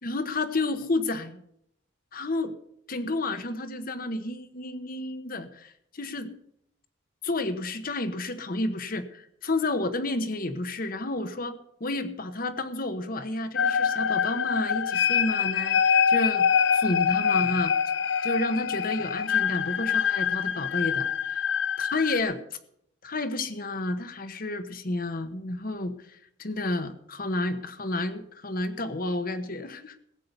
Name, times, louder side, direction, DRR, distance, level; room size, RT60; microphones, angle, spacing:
voice 1, 0.0-1.4 2.1-2.5 2.9-6.3 7.2-16.5 16.7-17.7 18.2-21.4 21.8-22.4 23.0-30.0, left 2 dB, 50° left, 10 dB, 1.2 m, -31 dB
sound 1, 13.6-22.2, left 7 dB, 70° left, 0.5 m, -25 dB
16.0 x 8.6 x 6.8 m, 0.73 s
head